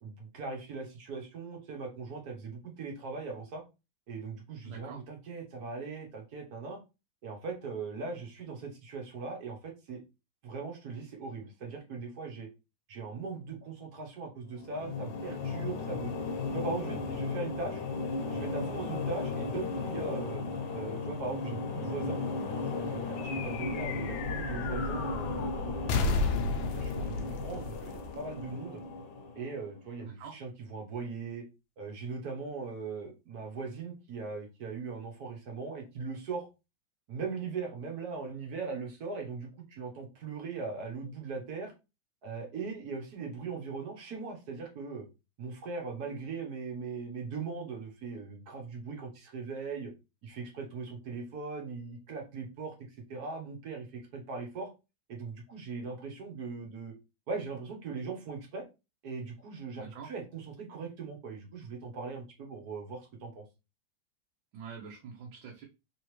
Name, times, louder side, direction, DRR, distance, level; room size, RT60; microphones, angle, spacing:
voice 1, 0.0-3.6 4.1-6.8 7.2-10.0 10.4-12.5 12.9-16.1 16.5-17.8 18.3-20.4 20.7-26.2 26.7-28.8 29.4-31.4 31.8-36.5 37.1-41.7 42.2-45.1 45.4-49.9 50.2-52.7 53.1-54.7 55.1-56.9 57.3-58.6 59.0-63.4, right 4 dB, 55° right, 1 dB, 1.3 m, -40 dB
voice 2, 4.6-5.0 30.0-30.4 59.8-60.1 64.5-65.6, right 6 dB, 80° right, -1 dB, 1.5 m, -45 dB
sound 1, 14.5-29.8, left 4 dB, 70° left, 1.3 m, -36 dB
sound 2, 23.2-28.9, left 3 dB, 90° left, 1.4 m, -34 dB
3.5 x 3.4 x 3.0 m, 0.27 s
omnidirectional pair, 2.1 m